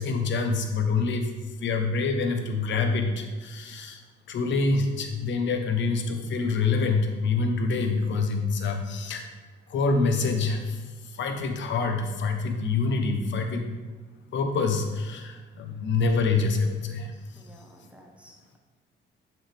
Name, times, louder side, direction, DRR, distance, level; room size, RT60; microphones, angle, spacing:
voice 1, 0.0-4.0 4.3-9.3 9.7-13.7 14.3-17.4, left 4 dB, 65° left, 5 dB, 1.1 m, -26 dB
voice 2, 17.3-18.6, equal, 5° right, 0 dB, 1.3 m, -53 dB
7.3 x 6.5 x 3.5 m, 1.3 s
cardioid pair, 90°, 20 cm